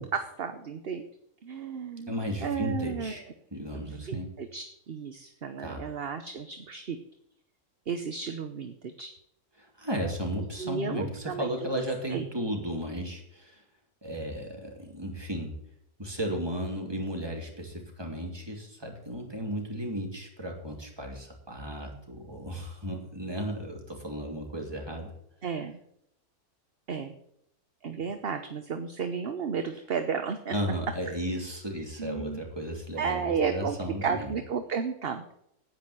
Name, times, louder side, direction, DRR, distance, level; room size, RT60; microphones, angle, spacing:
voice 1, 0.1-1.0 1.4-2.1 2.4-3.1 3.7-7.0 7.9-9.1 10.6-11.7 12.1-12.3 25.4-25.8 26.9-27.2 27.8-30.5 32.0-32.4 33.0-33.8 34.0-35.3, right 6 dB, 45° right, 8 dB, 1.0 m, -33 dB
voice 2, 2.1-3.2 3.5-4.3 5.6-5.9 9.6-13.6 14.0-15.6 16.0-25.1 30.5-34.3, equal, 15° right, 1 dB, 3.1 m, -34 dB
10.0 x 9.3 x 7.7 m, 0.75 s
omnidirectional pair, 1.6 m